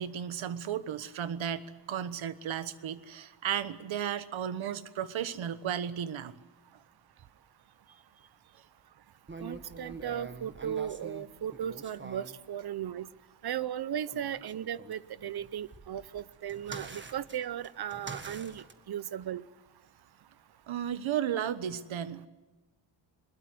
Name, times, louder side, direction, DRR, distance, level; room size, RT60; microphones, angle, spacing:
voice 1, 0.0-6.3 20.7-22.3, right 9 dB, 85° right, 14 dB, 1.3 m, -34 dB
sound 1, 9.3-12.4 14.1-18.7, right 3 dB, 25° right, 1.6 m, -46 dB
voice 2, 9.4-13.1 13.4-19.4, right 10 dB, 55° right, 19 dB, 0.7 m, -36 dB
22.0 x 21.0 x 7.9 m, 1.2 s
wide cardioid pair, 150°, 46 cm